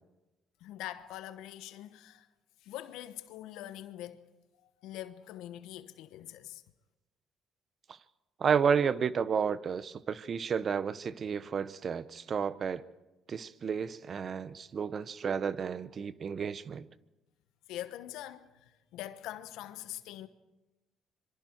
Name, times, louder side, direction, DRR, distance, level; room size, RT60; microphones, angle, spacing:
voice 1, 0.6-2.3 2.6-4.2 4.6-6.6 17.7-20.3, left 13 dB, 85° left, 1.1 m, -43 dB
voice 2, 8.4-12.8 13.3-16.9, right 6 dB, 50° right, 0.8 m, -31 dB
26.0 x 24.0 x 4.5 m
supercardioid pair, 70°, 0 cm